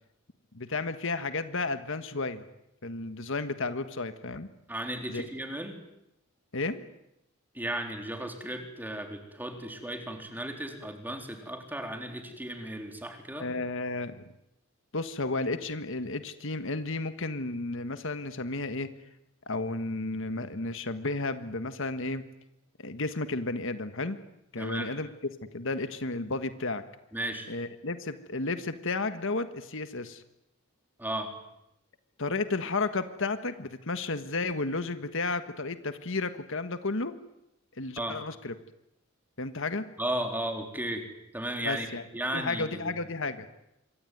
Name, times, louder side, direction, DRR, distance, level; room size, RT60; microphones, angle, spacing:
voice 1, 0.5-2.4 2.8-4.5 5.1-5.2 6.5-6.8 13.3-14.3 14.9-18.9 19.5-22.2 22.8-24.2 24.5-25.1 25.5-26.8 27.5-30.2 32.2-37.2 37.8-38.5 39.4-39.9 41.6-42.0 42.3-43.5, left 3 dB, 65° left, 10 dB, 1.5 m, -32 dB
voice 2, 4.7-5.8 7.5-13.5 24.6-24.9 27.1-27.5 31.0-31.3 38.0-38.2 40.0-41.1 41.3-43.0, right 1 dB, 10° right, 4 dB, 4.0 m, -35 dB
26.5 x 24.0 x 9.4 m, 0.84 s
head